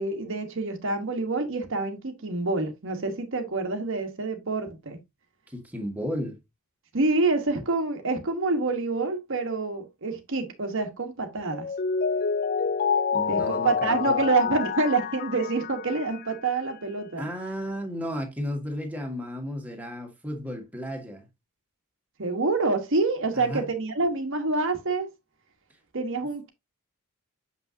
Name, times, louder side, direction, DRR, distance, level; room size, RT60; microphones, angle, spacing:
voice 1, 0.0-5.0 6.9-11.7 13.3-17.3 22.2-25.1 25.9-26.5, right 3 dB, 60° right, 1.2 m, -27 dB
voice 2, 5.5-6.4 13.1-14.2 17.2-21.3 23.3-23.7, equal, 5° right, 1.6 m, -33 dB
Mallet percussion, 11.5-16.5, left 6 dB, 40° left, 0.3 m, -27 dB
6.8 x 5.8 x 2.7 m
head